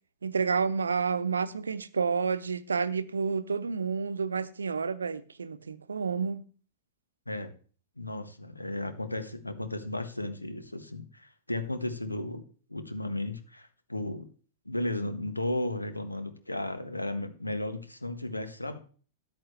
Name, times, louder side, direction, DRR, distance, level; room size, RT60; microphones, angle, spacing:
voice 1, 0.2-6.4, right 5 dB, 75° right, 0.7 m, -30 dB
voice 2, 8.0-12.4 12.7-14.3 14.6-18.8, left 1 dB, 90° left, 1.4 m, -34 dB
13.5 x 10.0 x 3.2 m
figure-of-eight pair, 100°, 0 cm